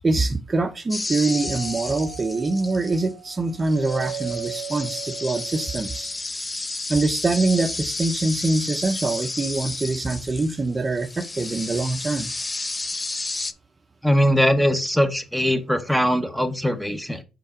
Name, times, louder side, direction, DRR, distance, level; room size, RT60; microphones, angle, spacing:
voice 1, 0.0-6.1 6.9-12.3, right 3 dB, 30° right, 0.8 m, -24 dB
sound 1, 0.9-3.1 3.6-10.6 10.9-13.5, left 2 dB, 20° left, 0.5 m, -32 dB
Doorbell, 1.3-6.1, right 11 dB, 55° right, 0.9 m, -37 dB
voice 2, 14.0-17.2, equal, ahead, 0.9 m, -21 dB
5.5 x 3.9 x 5.0 m
cardioid pair, 90°, 0 cm